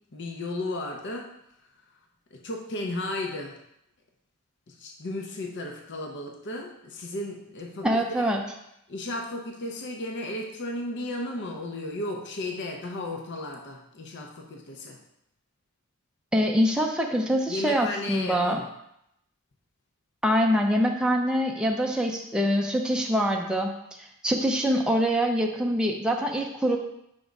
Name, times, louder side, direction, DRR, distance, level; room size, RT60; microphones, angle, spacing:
voice 1, 0.1-1.3 2.3-3.6 4.7-8.2 8.9-15.0 17.5-18.6, left 2 dB, 55° left, 1 dB, 0.7 m, -34 dB
voice 2, 7.8-8.4 16.3-18.6 20.2-23.7 24.0-26.8, equal, 5° right, 0 dB, 0.4 m, -24 dB
5.1 x 3.5 x 5.2 m, 0.79 s
head